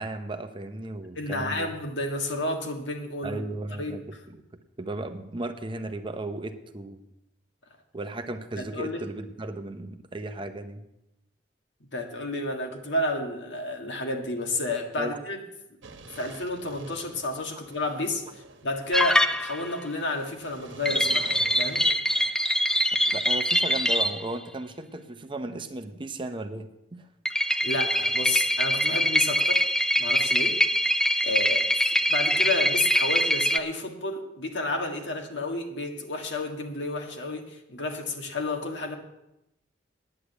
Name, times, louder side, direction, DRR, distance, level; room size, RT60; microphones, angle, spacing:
voice 1, 0.0-1.7 3.2-4.0 4.3-4.4 4.8-7.0 7.9-10.8 15.0-15.2 23.1-27.1, right 2 dB, 25° right, 8 dB, 0.7 m, -35 dB
voice 2, 1.2-3.4 3.8-4.2 8.6-9.0 11.9-15.4 16.2-21.9 27.4-29.7 30.0-30.6 31.2-39.0, left 2 dB, 70° left, 3 dB, 1.7 m, -31 dB
sound 1, 15.8-22.3, right 4 dB, 90° right, 1.1 m, -47 dB
sound 2, 18.9-19.8 20.8-24.2 27.2-33.6, equal, 5° left, 0.4 m, -24 dB
9.7 x 8.4 x 8.1 m, 0.88 s
head